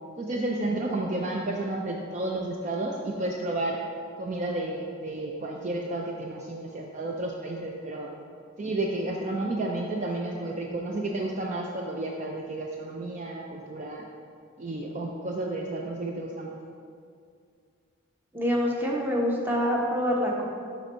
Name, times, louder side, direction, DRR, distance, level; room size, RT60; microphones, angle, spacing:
voice 1, 0.2-3.8 4.2-8.1 8.6-14.0 14.6-16.6, right 2 dB, 35° right, 0 dB, 0.4 m, -31 dB
voice 2, 18.3-20.5, equal, 10° right, -2 dB, 0.8 m, -26 dB
6.3 x 5.2 x 4.4 m, 2.3 s
head